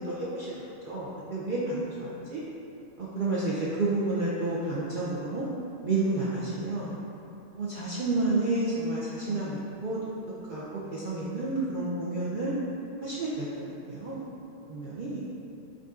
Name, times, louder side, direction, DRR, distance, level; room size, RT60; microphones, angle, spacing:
voice 1, 0.1-2.4 3.0-5.5 5.8-7.0 7.6-10.0 10.5-10.6 10.9-12.5 13.0-13.5 13.9-14.2 14.7-15.2, right 2 dB, 60° right, -8 dB, 0.5 m, -30 dB
7.3 x 2.7 x 2.4 m, 2.8 s
omnidirectional pair, 1.4 m